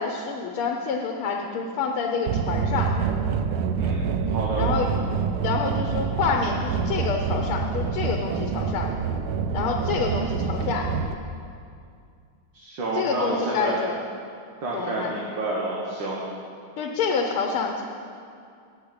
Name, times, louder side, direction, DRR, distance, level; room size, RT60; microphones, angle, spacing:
voice 1, 0.0-2.9 4.6-5.0 5.4-8.9 9.5-10.9 12.9-14.0 14.7-15.2 16.8-17.8, left 5 dB, 90° left, 2 dB, 1.8 m, -27 dB
sound 1, 2.3-11.1, right 6 dB, 90° right, 1.5 m, -26 dB
voice 2, 4.3-4.7 12.6-13.8 14.6-16.2, right 2 dB, 60° right, -4 dB, 2.1 m, -29 dB
11.5 x 7.1 x 8.8 m, 2.3 s
omnidirectional pair, 2.3 m